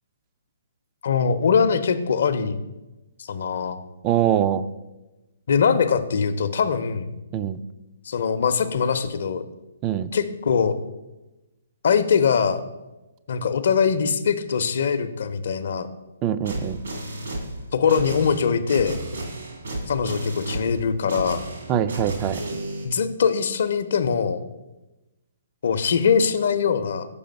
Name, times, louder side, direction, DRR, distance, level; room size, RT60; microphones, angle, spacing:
voice 1, 1.0-2.6 3.2-3.8 5.5-7.1 8.0-9.4 10.1-10.7 11.8-12.6 13.3-15.9 17.7-19.0 19.9-21.5 22.8-24.4 25.6-27.1, left 6 dB, 65° left, 11 dB, 0.6 m, -22 dB
voice 2, 4.0-4.6 7.3-7.6 9.8-10.1 16.2-16.8 21.7-22.4, right 10 dB, 25° right, 14 dB, 0.3 m, -23 dB
sound 1, 16.4-22.8, right 1 dB, 75° right, 2.6 m, -33 dB
6.9 x 5.1 x 5.2 m, 1.0 s
hypercardioid pair, 140°, 0 cm